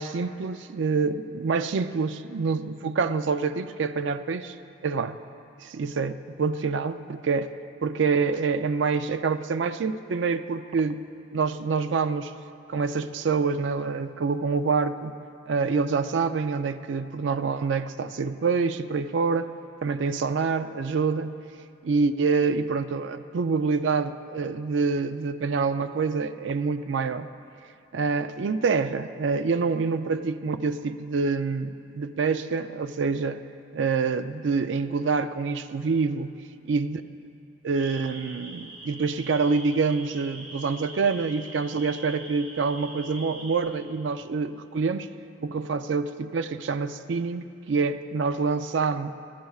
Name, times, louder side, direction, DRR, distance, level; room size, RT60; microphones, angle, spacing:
voice 1, 0.0-4.5 4.8-5.2 5.6-7.5 7.8-11.0 11.3-12.3 12.7-15.2 15.5-19.5 19.8-21.4 21.8-27.3 27.9-33.4 33.7-36.3 36.7-37.0 37.6-45.1 45.4-49.1, right 4 dB, 70° right, 11 dB, 0.4 m, -26 dB
sound 1, 37.7-43.6, right 2 dB, 35° right, 2.7 m, -43 dB
20.5 x 13.0 x 2.4 m, 2.5 s
head